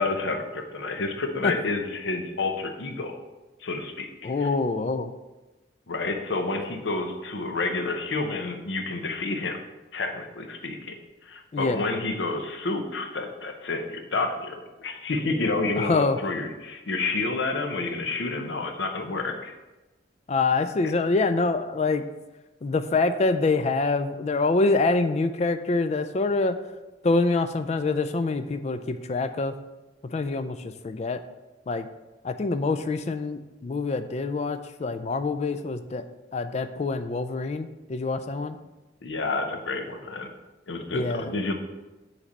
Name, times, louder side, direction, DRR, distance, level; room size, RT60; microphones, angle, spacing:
voice 1, 0.0-3.2 3.6-4.5 5.9-9.6 9.9-10.9 11.2-14.5 14.8-19.5 39.0-40.3 40.7-41.5, left 3 dB, 75° left, 5 dB, 0.7 m, -29 dB
voice 2, 4.2-5.1 11.5-11.8 15.8-16.2 20.3-22.0 22.6-26.6 27.0-29.5 30.0-31.2 31.7-31.9 32.2-36.0 36.3-38.5 40.9-41.3, left 3 dB, 35° left, 10 dB, 0.3 m, -25 dB
7.2 x 3.3 x 4.1 m, 1.1 s
head